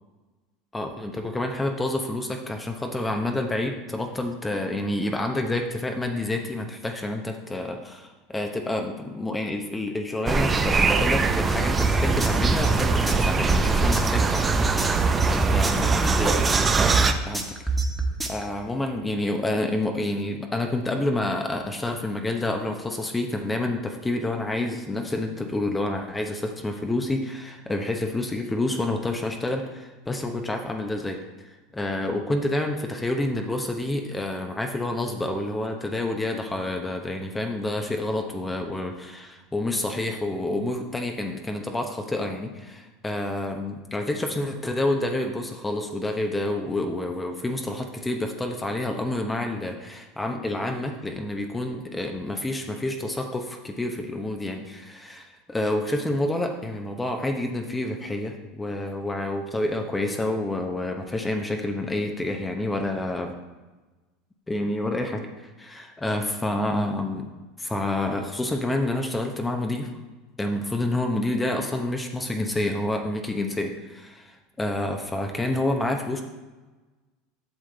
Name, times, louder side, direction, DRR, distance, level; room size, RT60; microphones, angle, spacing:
voice 1, 0.7-14.6 15.3-16.4 17.3-17.4 18.3-31.2 31.5-63.4 64.5-65.3 65.6-67.3 67.6-69.9 70.4-76.2, left 1 dB, 15° left, 4 dB, 0.8 m, -28 dB
sound 1, 10.3-17.1, right 4 dB, 25° right, 0.6 m, -22 dB
sound 2, 11.8-18.4, right 3 dB, 5° right, 1.3 m, -25 dB
8.1 x 6.3 x 3.9 m, 1.2 s
hypercardioid pair, 95°, 0 cm